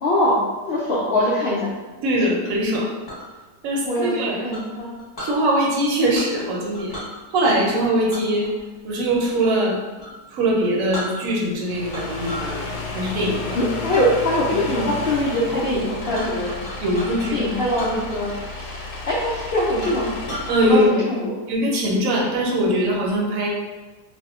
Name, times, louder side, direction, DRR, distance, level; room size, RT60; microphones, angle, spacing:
voice 1, 0.0-0.4 0.7-1.7 3.8-5.0 13.5-16.6 17.3-18.3 18.6-20.1 20.6-21.3, left 1 dB, 70° left, -8 dB, 0.6 m, -22 dB
voice 2, 2.0-2.9 3.6-4.5 5.2-6.9 7.3-8.5 8.8-9.8 10.3-12.7 12.9-13.6 16.8-17.4 20.5-20.9 21.5-23.5, right 1 dB, 65° right, -2 dB, 1.0 m, -21 dB
Chink clink, 2.7-3.3 4.5-5.4 6.1-6.4 6.7-7.1 8.1-9.6 10.0-10.2 10.6-10.7 10.9-11.5 11.9-12.5 12.9-13.3 13.9-14.1 14.6-14.9 15.3-15.4 15.7-17.3 17.7-18.5 18.8-18.9 19.3-19.4 19.8-20.5, equal, 20° left, 0.7 m, -35 dB
sound 1, 11.6-20.9, left 3 dB, 90° left, 1.2 m, -32 dB
2.7 x 2.1 x 3.5 m, 1.3 s
omnidirectional pair, 1.7 m